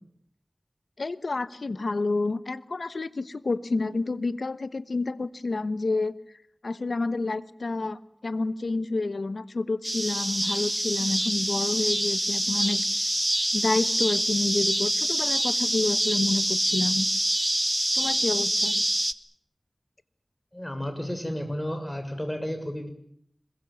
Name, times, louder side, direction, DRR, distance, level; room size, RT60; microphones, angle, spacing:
voice 1, 1.0-6.1 6.6-12.8 13.5-17.1 17.9-18.8, left 3 dB, 85° left, 14 dB, 1.1 m, -29 dB
sound 1, 9.8-19.1, right 1 dB, 20° right, 1.2 m, -26 dB
voice 2, 20.5-22.9, equal, 15° left, 7 dB, 6.7 m, -32 dB
26.5 x 22.0 x 7.2 m, 0.66 s
wide cardioid pair, 40°, 0 cm